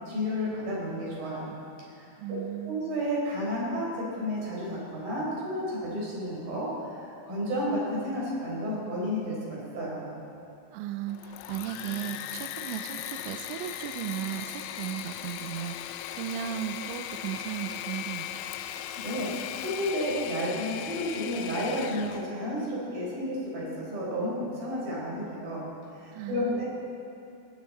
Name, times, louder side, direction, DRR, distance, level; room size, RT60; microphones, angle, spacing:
voice 1, 0.1-1.5 2.0-2.4 2.7-10.1 18.7-25.6 25.9-26.7, equal, 45° right, -5 dB, 5.9 m, -32 dB
voice 2, 2.2-2.9 10.7-18.3 26.1-26.6, right 12 dB, 85° right, 9 dB, 2.5 m, -36 dB
Engine / Mechanisms, 11.1-22.3, left 11 dB, 85° left, 2.6 m, -38 dB
23.5 x 14.0 x 4.2 m, 2.7 s
omnidirectional pair, 5.8 m